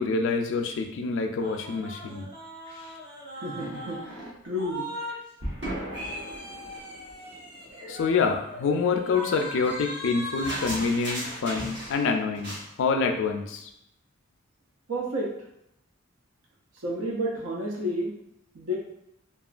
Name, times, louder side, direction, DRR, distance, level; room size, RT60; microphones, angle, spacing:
voice 1, 0.0-2.3 2.7-2.8 7.9-13.7, left 4 dB, 65° left, 4 dB, 0.4 m, -27 dB
sound 1, 1.4-5.1 5.4-12.1 12.3-12.7, equal, 60° right, 0.9 m, -37 dB
voice 2, 3.4-4.2 4.4-4.8 14.9-15.3 16.8-18.1 18.5-18.8, equal, 85° right, -2 dB, 0.6 m, -30 dB
2.9 x 2.4 x 2.4 m, 0.79 s
head